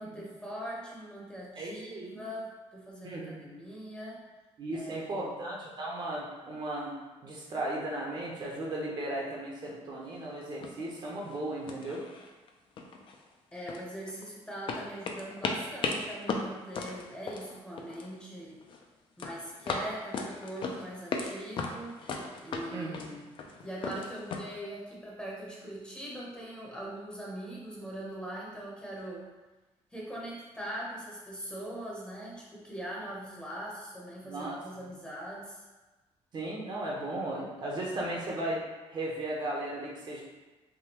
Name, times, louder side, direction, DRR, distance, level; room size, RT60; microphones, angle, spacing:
voice 1, 0.0-4.2 4.7-5.4 13.5-18.6 19.2-22.0 22.4-23.3 23.6-29.3 29.9-35.6, right 1 dB, 10° left, -5 dB, 0.7 m, -41 dB
voice 2, 1.6-2.2 3.0-3.4 4.6-12.0 22.7-23.0 34.2-34.6 36.3-38.6 38.9-40.2, right 1 dB, 40° right, -3 dB, 0.6 m, -36 dB
sound 1, 10.1-10.2 10.6-10.9 11.2-11.4 11.7-12.5 12.8-14.2 14.7-18.2 18.4-18.8 19.2-21.3 21.6-24.4, left 4 dB, 45° left, 0.4 m, -36 dB
3.4 x 2.2 x 2.9 m, 1.2 s
cardioid pair, 120°, 12 cm